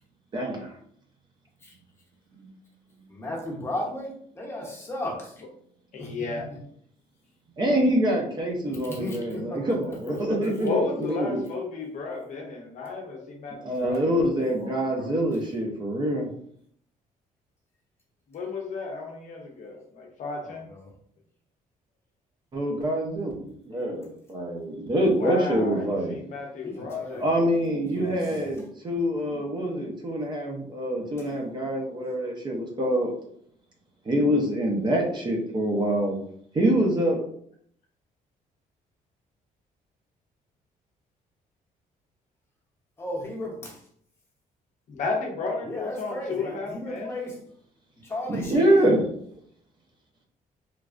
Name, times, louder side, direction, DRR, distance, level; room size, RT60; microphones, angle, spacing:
voice 1, 0.3-0.6 2.4-2.5 7.6-11.4 13.6-16.3 22.5-26.2 27.2-33.1 34.0-36.2 36.5-37.2 48.3-49.0, right 1 dB, 30° right, 0 dB, 0.6 m, -25 dB
voice 2, 3.1-5.3 6.0-6.1 8.9-9.8 10.1-10.2 20.4-20.9 26.6-27.5 27.9-28.5 43.0-43.8 45.6-47.3 48.0-48.9, left 1 dB, 15° left, -3 dB, 0.8 m, -35 dB
voice 3, 5.9-6.5 10.6-14.1 14.4-15.1 18.3-20.7 25.1-27.2 27.9-28.2 44.9-47.1, left 3 dB, 55° left, 2 dB, 0.6 m, -33 dB
3.1 x 2.3 x 2.4 m, 0.64 s
cardioid pair, 140°, 15 cm